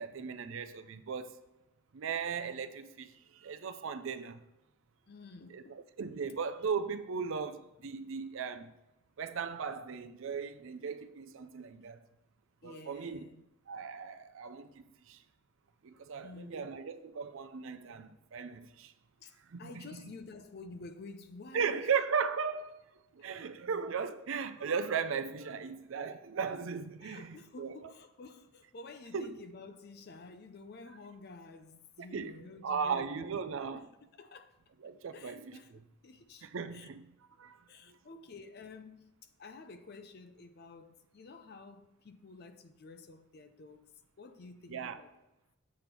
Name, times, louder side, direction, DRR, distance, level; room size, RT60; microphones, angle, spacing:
voice 1, 0.0-1.4 1.9-4.4 5.5-8.7 9.2-12.0 12.6-13.3 13.7-15.2 15.8-18.9 19.5-20.0 21.5-22.8 23.1-27.8 29.1-29.3 32.1-33.8 34.8-35.8 36.4-38.0 44.7-45.0, right 6 dB, 65° right, 0.4 m, -37 dB
voice 2, 5.1-5.9 12.6-13.4 16.2-16.7 19.2-21.9 27.0-34.6 35.1-36.9 37.7-43.9 44.2-45.1, left 3 dB, 45° left, 0.4 m, -51 dB
7.6 x 3.5 x 5.8 m
head